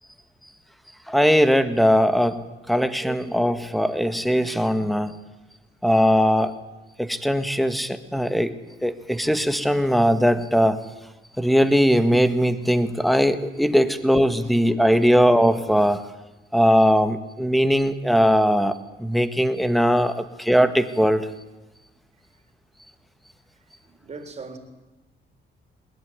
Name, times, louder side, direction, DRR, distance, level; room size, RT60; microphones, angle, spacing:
voice 1, 1.1-5.2 5.8-6.5 7.0-8.5 8.8-10.8 11.4-16.0 16.5-18.7 19.0-21.3, equal, ahead, 1.7 m, -20 dB
voice 2, 23.6-24.6, right 4 dB, 35° right, 4.0 m, -40 dB
21.0 x 20.5 x 9.6 m
cardioid pair, 120°, 20 cm